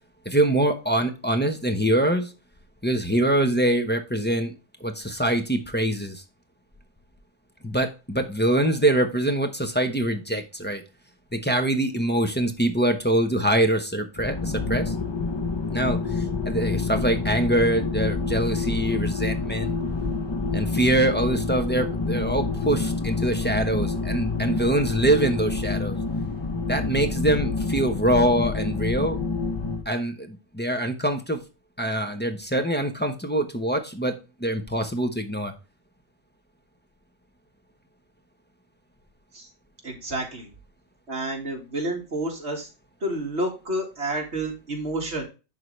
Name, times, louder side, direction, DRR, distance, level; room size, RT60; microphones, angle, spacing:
voice 1, 0.2-2.3 2.8-4.5 4.8-6.2 7.6-10.8 11.3-14.9 15.7-16.0 16.4-19.8 20.5-26.0 26.7-29.2 29.9-31.4 31.8-34.1 34.4-35.5, right 1 dB, 10° left, 3 dB, 0.9 m, -24 dB
sound 1, 14.2-29.8, left 3 dB, 30° left, 0.5 m, -27 dB
voice 2, 39.8-40.5 41.1-42.7 43.0-45.2, right 1 dB, 60° right, 1 dB, 2.4 m, -29 dB
11.0 x 3.9 x 3.2 m, 0.30 s
omnidirectional pair, 1.3 m